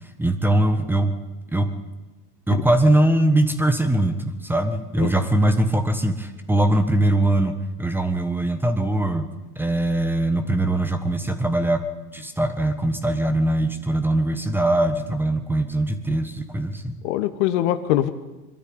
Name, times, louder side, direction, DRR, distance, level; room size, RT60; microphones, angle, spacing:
voice 1, 0.2-1.1 1.5-1.7 2.5-9.3 9.5-11.8 12.1-17.0, right 1 dB, 5° right, 9 dB, 1.4 m, -21 dB
voice 2, 17.0-18.1, left 13 dB, 45° left, 11 dB, 1.4 m, -23 dB
22.5 x 13.0 x 8.8 m, 1.1 s
figure-of-eight pair, 95°, 47 cm